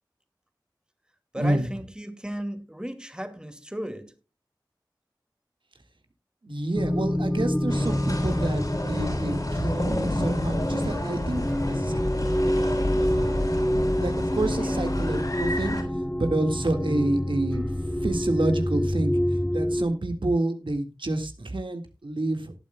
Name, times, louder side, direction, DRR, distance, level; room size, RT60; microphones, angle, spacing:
voice 1, 1.3-4.1 14.6-14.9, equal, 10° right, 2.2 m, -35 dB
voice 2, 6.4-11.9 12.3-13.6 14.0-15.8 16.2-17.7 18.0-22.5, right 2 dB, 80° right, 1.8 m, -29 dB
sound 1, 6.7-19.8, equal, 10° left, 0.8 m, -27 dB
sound 2, 7.7-15.8, left 1 dB, 45° left, 6.4 m, -29 dB
19.0 x 9.3 x 2.2 m
wide cardioid pair, 45°, 8 cm